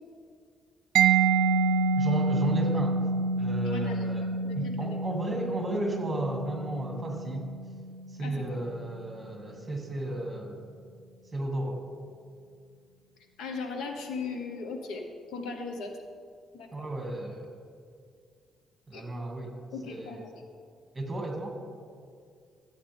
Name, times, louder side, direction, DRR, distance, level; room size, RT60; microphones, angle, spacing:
Mallet percussion, 1.0-8.5, right 4 dB, 90° right, 0.4 m, -28 dB
voice 1, 2.0-3.0 3.4-7.5 8.1-10.6 11.3-11.8 16.7-17.5 18.9-19.5 19.9-20.2 20.9-21.6, right 2 dB, 20° right, 1 dB, 2.1 m, -33 dB
voice 2, 3.6-5.0 8.2-8.6 13.4-15.9 16.5-16.9 18.9-19.0 19.7-20.5, left 4 dB, 85° left, 4 dB, 1.2 m, -38 dB
13.5 x 8.4 x 3.5 m, 2.1 s
cardioid pair, 90°, 0 cm